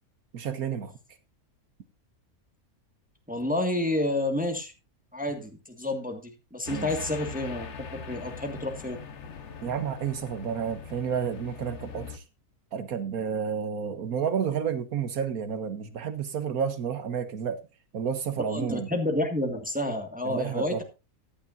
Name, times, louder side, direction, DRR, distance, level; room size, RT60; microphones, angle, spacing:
voice 1, 0.3-0.9 6.7-6.9 9.6-12.2 12.7-17.6 17.9-18.9 20.2-20.8, right 7 dB, 75° right, 1.5 m, -30 dB
voice 2, 3.3-4.7 5.1-9.0 18.5-20.8, left 1 dB, 5° right, 1.7 m, -30 dB
sound 1, 6.7-12.2, left 6 dB, 55° left, 1.4 m, -41 dB
15.0 x 10.0 x 2.6 m
omnidirectional pair, 1.6 m